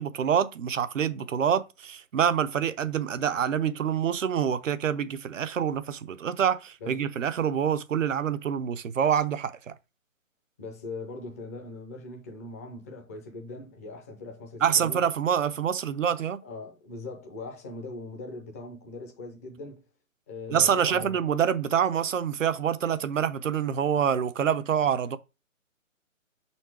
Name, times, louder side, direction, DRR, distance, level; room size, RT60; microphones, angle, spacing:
voice 1, 0.0-9.7 14.6-16.4 20.5-25.2, right 8 dB, 70° right, 0.8 m, -26 dB
voice 2, 10.6-15.0 16.4-19.8 20.3-21.2, left 3 dB, 10° left, 0.5 m, -40 dB
5.7 x 4.3 x 4.5 m
hypercardioid pair, 145°, 40 cm